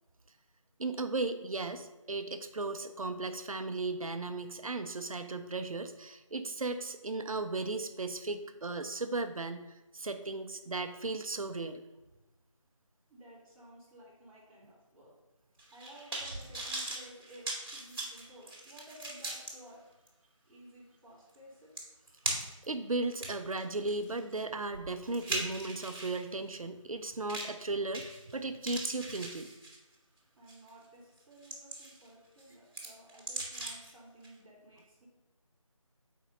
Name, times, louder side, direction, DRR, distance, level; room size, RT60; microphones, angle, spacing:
voice 1, 0.8-11.8 22.6-29.5, right 3 dB, 85° right, 8 dB, 0.5 m, -36 dB
voice 2, 13.1-15.2 15.7-19.8 20.4-21.7 30.3-35.1, right 1 dB, 10° right, -11 dB, 1.7 m, -55 dB
sound 1, 15.6-19.5 20.1-20.2 21.3-21.4 21.8-22.7 23.1-26.2 27.3-27.6 27.9-28.3 28.6-29.9 30.5-30.7 31.2-32.1 32.4-33.9 34.2-34.3, right 2 dB, 45° right, 1.9 m, -39 dB
4.7 x 4.6 x 5.4 m, 1.1 s
figure-of-eight pair, 165°, 17 cm